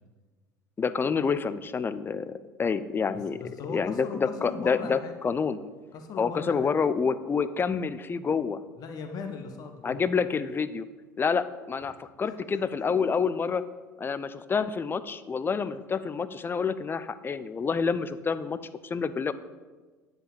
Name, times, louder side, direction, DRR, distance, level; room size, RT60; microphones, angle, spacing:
voice 1, 0.8-3.4 3.7-5.6 6.2-8.6 9.8-10.9 11.2-13.6 14.0-18.6 18.8-19.3, left 5 dB, 20° left, 13 dB, 0.5 m, -28 dB
voice 2, 3.3-5.1 5.9-6.7 8.8-10.0 12.2-12.6, left 4 dB, 45° left, 5 dB, 1.4 m, -39 dB
10.0 x 5.2 x 7.2 m, 1.3 s
figure-of-eight pair, 65°, 9 cm